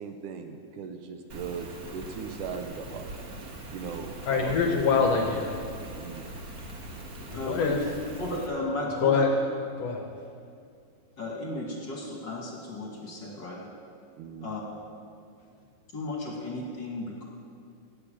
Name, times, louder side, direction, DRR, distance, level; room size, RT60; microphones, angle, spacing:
voice 1, 0.0-3.1 3.7-4.5 5.9-6.3 14.2-14.5, right 6 dB, 75° right, 6 dB, 2.2 m, -38 dB
Rain, 1.3-8.5, right 1 dB, 50° right, 1.1 m, -41 dB
voice 2, 4.3-5.6 7.3-7.8 9.0-9.3 9.8-10.0, left 5 dB, 65° left, 2 dB, 1.8 m, -24 dB
voice 3, 7.2-7.9 8.2-9.3 11.2-13.6 14.4-14.6 15.9-17.2, left 2 dB, 40° left, -2 dB, 1.9 m, -34 dB
16.5 x 7.0 x 8.9 m, 2.4 s
omnidirectional pair, 3.9 m